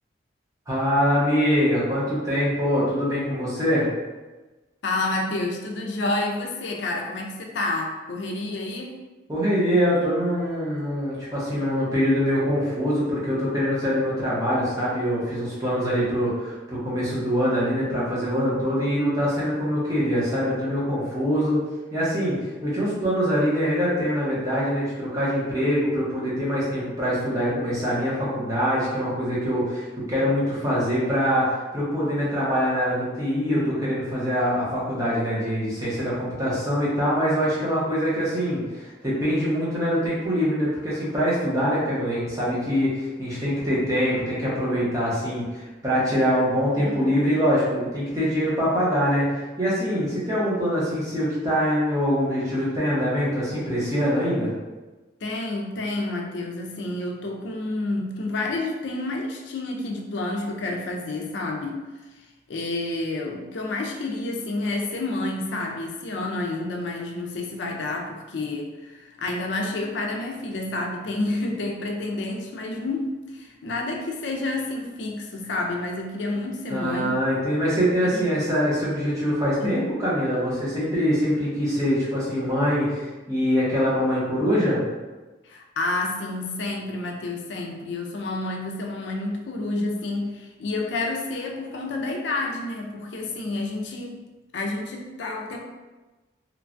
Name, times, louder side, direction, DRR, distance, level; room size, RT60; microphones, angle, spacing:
voice 1, 0.7-3.9 9.3-21.6 21.9-49.3 49.6-54.5 76.7-84.8, equal, 20° right, -8 dB, 0.8 m, -24 dB
voice 2, 4.8-9.0 46.9-47.1 55.2-61.8 62.2-77.2 78.1-78.2 79.6-79.9 85.4-94.2 94.5-95.6, left 2 dB, 80° left, 1 dB, 0.4 m, -29 dB
3.1 x 2.2 x 2.5 m, 1.2 s
head